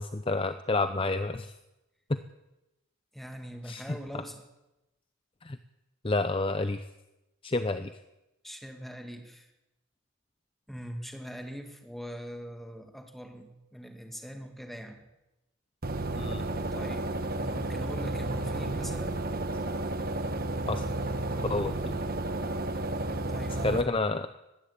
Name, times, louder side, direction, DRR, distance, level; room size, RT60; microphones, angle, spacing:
voice 1, 0.0-1.5 2.1-2.2 3.6-4.0 5.4-5.6 6.0-6.8 7.4-7.9 16.2-16.4 20.7-20.9 21.5-22.0 23.6-24.3, left 3 dB, 25° left, 10 dB, 0.6 m, -29 dB
voice 2, 3.1-4.4 8.4-9.5 10.7-15.1 16.7-17.1 17.4-19.2 23.3-24.0, equal, ahead, 4 dB, 2.3 m, -42 dB
sound 1, 15.8-23.8, right 2 dB, 45° right, 1.3 m, -32 dB
20.5 x 15.5 x 8.5 m, 0.97 s
head